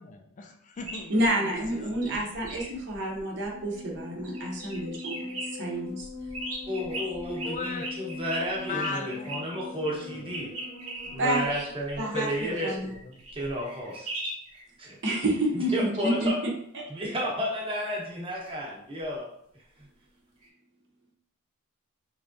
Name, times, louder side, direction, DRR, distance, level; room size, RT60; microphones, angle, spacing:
voice 1, 0.0-2.2 6.9-7.1 7.4-7.9 8.6-10.3 11.0-11.1 12.0-13.3, left 4 dB, 35° left, 3 dB, 0.3 m, -39 dB
sound 1, 0.8-4.0 4.2-5.5 6.0-9.4 10.3-14.6 20.4-20.5, right 1 dB, 75° right, 1.1 m, -39 dB
voice 2, 1.1-6.1 11.2-11.7 12.0-12.9 15.0-16.3, right 1 dB, 55° right, -1 dB, 0.8 m, -29 dB
sound 2, 3.5-11.8, left 4 dB, 15° left, 0.8 m, -41 dB
voice 3, 6.7-10.5 11.1-12.7 13.3-14.1 14.8-15.0 15.5-16.4 16.9-19.3, equal, 25° right, -3 dB, 1.0 m, -32 dB
3.5 x 3.2 x 2.6 m, 0.69 s
head